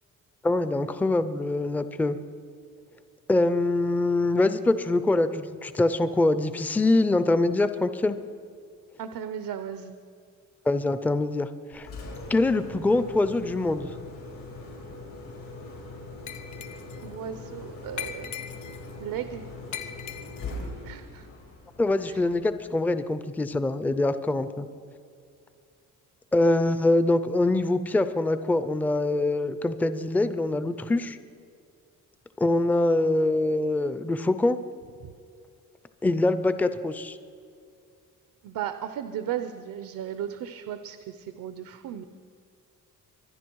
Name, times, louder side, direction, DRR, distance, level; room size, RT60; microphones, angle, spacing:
voice 1, 0.4-2.2 3.3-8.2 10.7-11.9 12.3-13.9 21.8-24.7 26.3-31.2 32.4-34.6 36.0-37.2, left 2 dB, 5° left, 12 dB, 0.4 m, -24 dB
voice 2, 9.0-10.0 17.0-18.3 19.0-19.4 20.8-21.3 22.1-22.2 35.0-35.1 38.4-42.0, right 9 dB, 85° right, 10 dB, 0.8 m, -35 dB
Engine, 11.7-22.7, left 2 dB, 85° left, 4.9 m, -41 dB
Glass, 16.3-17.1 18.0-18.9 19.7-20.6, left 10 dB, 60° left, 1.0 m, -39 dB
25.0 x 10.0 x 4.6 m, 2.4 s
cardioid pair, 175°, 33 cm